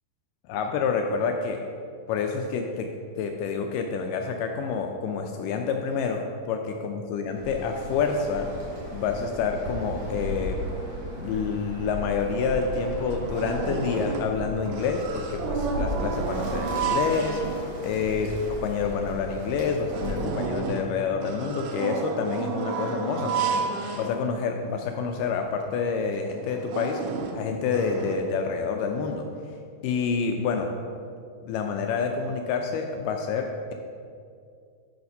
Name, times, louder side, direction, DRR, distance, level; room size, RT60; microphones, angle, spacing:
voice 1, 0.5-1.6 2.1-2.9 3.2-8.5 8.9-10.6 11.2-17.4 17.8-18.3 18.6-23.6 24.0-27.0 27.3-29.3 29.8-30.7 31.4-33.7, left 5 dB, 80° left, 3 dB, 2.0 m, -28 dB
Bird, 7.3-20.4, equal, 50° right, 3.1 m, -36 dB
sound 1, 12.3-12.4 12.7-14.4 14.7-17.9 18.4-18.5 18.9-19.0 19.5-24.7 25.2-25.3 25.6-25.8 26.3-28.1, right 5 dB, 90° right, 2.5 m, -31 dB
9.6 x 4.2 x 5.2 m, 2.4 s
omnidirectional pair, 4.1 m